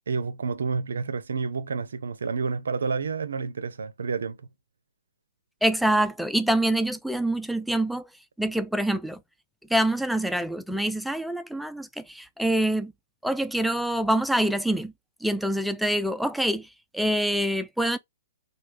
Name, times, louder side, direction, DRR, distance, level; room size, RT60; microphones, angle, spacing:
voice 1, 0.1-4.5, right 5 dB, 75° right, 0.5 m, -29 dB
voice 2, 5.6-8.1 8.4-9.2 9.7-12.9 13.2-14.9 15.2-18.0, right 1 dB, ahead, 0.3 m, -25 dB
3.2 x 2.2 x 3.2 m
figure-of-eight pair, 120°, 0 cm